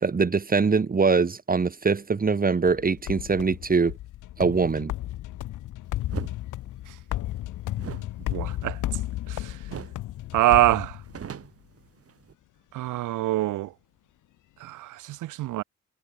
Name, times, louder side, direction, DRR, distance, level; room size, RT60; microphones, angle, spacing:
voice 1, 0.0-3.9 4.4-4.9, right 4 dB, 30° right, 2.1 m, -23 dB
sound 1, 2.7-11.5, left 14 dB, 85° left, 4.2 m, -34 dB
sound 2, 6.1-6.4 7.7-9.3 9.7-10.1 10.4-10.5 10.8-12.3, right 7 dB, 50° right, 4.8 m, -39 dB
voice 2, 8.3-8.8 9.3-9.6 10.3-11.0 12.7-13.7 14.6-15.6, right 16 dB, 85° right, 2.0 m, -25 dB
cardioid pair, 90°, 30 cm